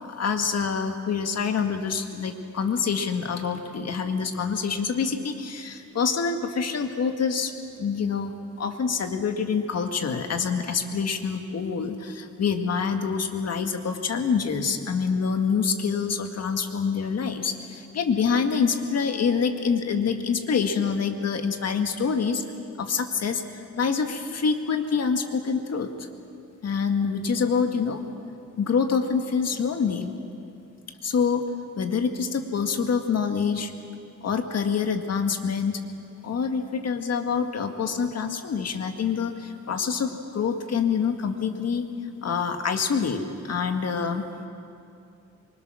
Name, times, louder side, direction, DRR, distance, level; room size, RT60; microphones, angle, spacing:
voice 1, 0.2-7.5 7.8-22.4 22.8-23.4 23.8-25.9 26.6-28.0 28.6-30.1 31.0-31.4 31.8-33.7 34.2-35.8 36.2-41.9 42.2-43.2 43.5-44.3, left 6 dB, 55° left, 5 dB, 1.9 m, -26 dB
25.0 x 23.5 x 6.3 m, 2.6 s
wide cardioid pair, 130°, 30 cm